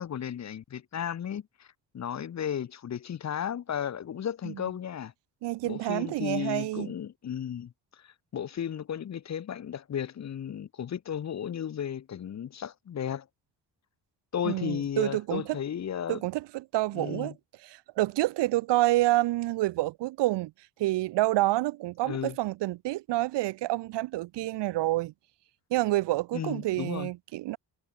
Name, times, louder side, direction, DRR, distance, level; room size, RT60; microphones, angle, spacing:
voice 1, 0.0-1.7 1.9-5.1 5.6-13.3 14.3-16.2 16.9-17.3 22.0-22.4 26.3-27.1, left 9 dB, 40° left, 0.7 m, -34 dB
voice 2, 5.4-6.9 14.4-15.6 16.1-17.3 17.6-20.5 20.8-25.1 25.7-27.6, right 17 dB, 85° right, 0.6 m, -28 dB
cardioid pair, 100°, 41 cm